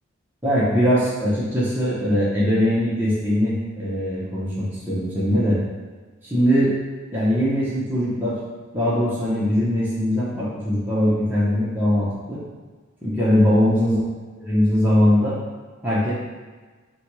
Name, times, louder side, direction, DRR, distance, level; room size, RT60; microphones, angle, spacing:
voice 1, 0.4-5.6 6.2-6.8 7.1-8.4 8.7-12.4 13.0-14.0 14.4-15.4 15.8-16.1, equal, 10° right, -10 dB, 0.6 m, -21 dB
4.1 x 2.2 x 2.9 m, 1.4 s
head